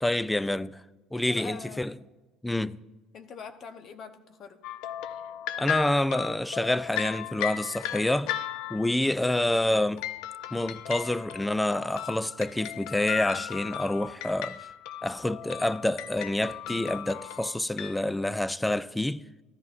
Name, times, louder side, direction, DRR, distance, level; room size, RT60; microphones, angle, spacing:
voice 1, 0.0-0.8 1.1-1.9 2.4-2.8 5.6-8.3 8.7-10.0 10.5-14.7 15.0-19.2, left 1 dB, 10° left, 0.3 m, -27 dB
voice 2, 1.1-1.8 3.1-4.6, left 5 dB, 50° left, 0.9 m, -43 dB
sound 1, 4.6-9.0 10.0-18.0, left 12 dB, 75° left, 0.5 m, -36 dB
15.0 x 10.5 x 2.5 m
supercardioid pair, 90°, 0 cm